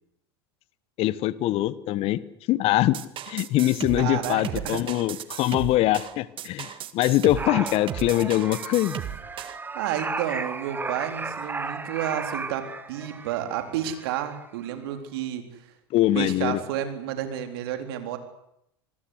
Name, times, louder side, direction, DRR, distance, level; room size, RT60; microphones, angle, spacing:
voice 1, 1.0-2.2 2.5-3.0 3.2-9.0 15.9-16.6, left 15 dB, 45° left, 19 dB, 1.2 m, -23 dB
sound 1, 2.9-9.6, right 11 dB, 40° right, 2.0 m, -35 dB
voice 2, 4.0-4.8 9.7-15.6 16.1-18.2, right 10 dB, 65° right, 7 dB, 4.0 m, -31 dB
sound 2, 7.4-14.5 14.7-14.9, right 4 dB, 15° right, 1.5 m, -35 dB
26.5 x 20.0 x 8.2 m, 0.77 s
hypercardioid pair, 90°, 14 cm